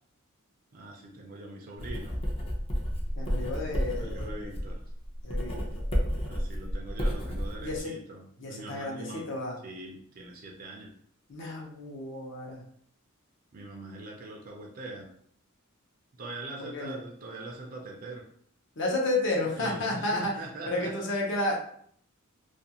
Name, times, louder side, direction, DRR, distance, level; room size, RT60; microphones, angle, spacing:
voice 1, 0.7-2.3 3.9-4.8 6.3-9.3 9.6-10.9 13.5-15.1 16.2-18.3 19.6-20.9, right 2 dB, 40° right, -1 dB, 0.4 m, -42 dB
Writing, 1.8-7.8, equal, 25° left, 0.5 m, -31 dB
voice 2, 3.2-4.5 5.2-5.8 7.6-7.9 8.4-9.6 11.3-12.6 16.6-16.9 18.8-20.3 20.7-21.6, left 2 dB, 60° left, -1 dB, 0.7 m, -32 dB
2.4 x 2.3 x 2.8 m, 0.63 s
head